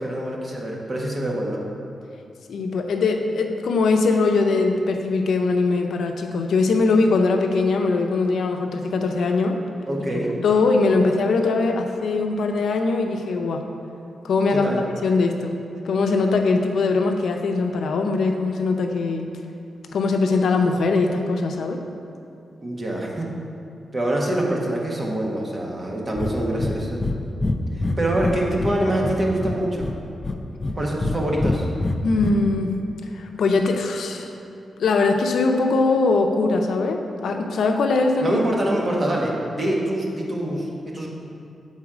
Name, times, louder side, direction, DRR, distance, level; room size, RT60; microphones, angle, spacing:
voice 1, 0.0-1.6 9.9-10.3 14.5-14.8 22.6-23.3 23.9-27.0 28.0-29.9 30.7-31.7 38.2-41.1, right 1 dB, 30° right, -2 dB, 1.1 m, -25 dB
voice 2, 2.5-9.6 10.4-13.6 14.2-14.7 15.0-15.5 15.8-19.3 19.9-21.8 32.0-32.7 33.1-34.3 34.8-38.4, left 3 dB, 80° left, 4 dB, 0.5 m, -21 dB
Breathing, 26.1-26.3 26.6-26.7 27.0-27.1 27.4-28.8 29.0-29.9 30.2-31.1 31.4-32.3, left 2 dB, 25° left, 0.4 m, -24 dB
7.3 x 4.0 x 4.9 m, 2.6 s
wide cardioid pair, 110°, 0 cm